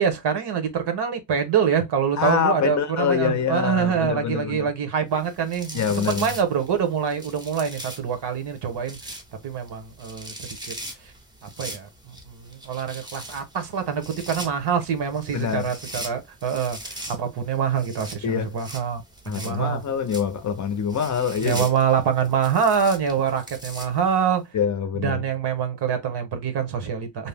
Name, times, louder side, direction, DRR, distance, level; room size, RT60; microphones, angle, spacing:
voice 1, 0.0-9.0 9.4-10.3 10.7-10.8 11.4-19.8 21.4-24.5 25.0-27.3, right 7 dB, 70° right, 0.9 m, -25 dB
voice 2, 2.2-4.7 5.7-6.3 15.3-15.7 18.2-18.6 19.3-21.7 24.5-25.2, left 7 dB, 45° left, 0.5 m, -25 dB
sound 1, 5.1-24.3, right 1 dB, 10° right, 0.6 m, -41 dB
2.7 x 2.0 x 3.3 m
wide cardioid pair, 150°, 42 cm